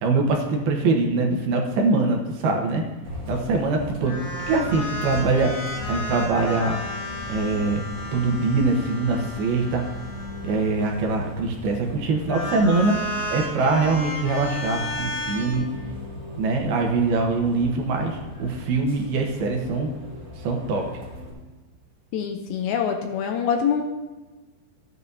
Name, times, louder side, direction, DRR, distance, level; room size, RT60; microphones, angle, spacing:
voice 1, 0.0-2.8 3.3-4.2 4.5-5.6 5.9-6.8 7.3-7.8 8.1-9.8 10.4-13.0 13.3-15.6 16.4-19.9 20.4-20.9, right 3 dB, 75° right, 2 dB, 2.9 m, -23 dB
Bus, 3.0-21.3, left 1 dB, 25° right, 2.5 m, -38 dB
sound 1, 4.0-11.4 12.2-15.5, left 1 dB, 50° left, 4.1 m, -33 dB
voice 2, 22.1-23.8, left 7 dB, 80° left, 4 dB, 2.3 m, -25 dB
14.5 x 9.2 x 2.8 m, 1.2 s
omnidirectional pair, 4.7 m